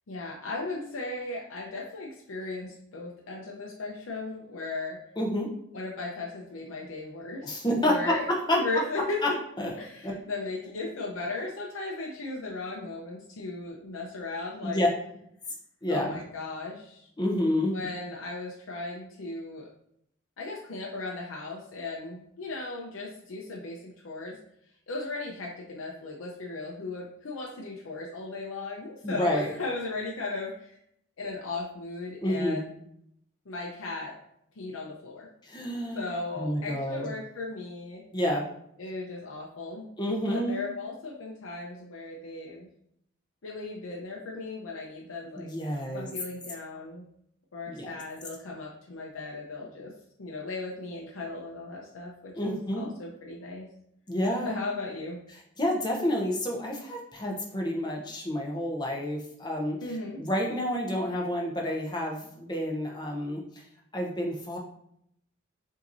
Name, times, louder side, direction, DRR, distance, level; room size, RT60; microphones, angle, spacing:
voice 1, 0.1-5.0 5.7-7.5 7.8-8.2 8.5-9.2 9.8-14.8 15.9-17.1 17.7-19.7 20.4-24.4 24.9-30.7 31.2-32.7 33.5-34.1 34.6-35.3 36.0-38.0 38.8-39.9 40.3-42.7 43.4-45.5 45.9-47.0 47.5-49.9 50.2-53.7 54.4-55.2 59.8-60.2, left 3 dB, 90° left, -2 dB, 0.6 m, -36 dB
voice 2, 5.2-5.5 7.4-8.8 9.2-9.3 9.6-9.7 10.0-10.1 14.6-14.9 15.8-16.2 17.2-17.8 29.0-29.5 32.2-32.6 35.4-36.1 36.4-37.1 38.1-38.5 40.0-40.7 45.4-46.1 47.7-48.0 52.3-52.9 54.1-54.6 55.6-63.4 63.9-64.6, left 1 dB, 20° left, 0 dB, 0.7 m, -29 dB
5.7 x 2.8 x 2.6 m, 0.72 s
head